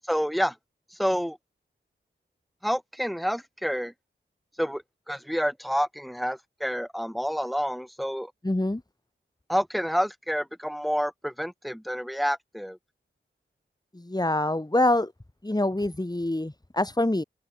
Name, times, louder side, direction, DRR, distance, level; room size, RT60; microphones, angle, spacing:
voice 1, 0.1-0.5 1.0-1.4 2.6-3.9 4.6-8.3 9.5-12.8, equal, ahead, 6.5 m, -28 dB
voice 2, 8.4-8.8 13.9-15.1 15.4-17.2, left 1 dB, 20° left, 2.7 m, -25 dB
open air
cardioid pair, 40°, 21 cm